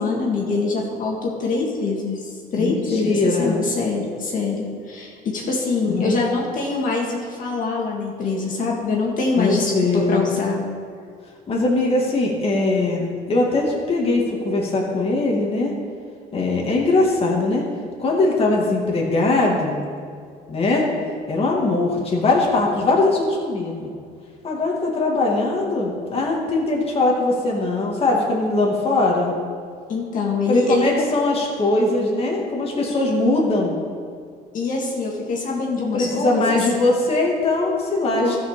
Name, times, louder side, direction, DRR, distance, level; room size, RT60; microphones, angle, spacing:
voice 1, 0.0-10.6 29.9-30.9 34.5-36.6 38.2-38.3, left 3 dB, 50° left, -2 dB, 2.1 m, -24 dB
voice 2, 2.6-3.5 5.9-6.1 9.4-10.3 11.5-15.8 16.3-17.7 18.0-19.8 20.5-20.9 21.3-23.9 24.4-29.3 30.5-33.7 35.8-38.4, left 2 dB, 35° left, -2 dB, 2.1 m, -21 dB
13.5 x 5.5 x 6.6 m, 2.2 s
cardioid pair, 110°, 17 cm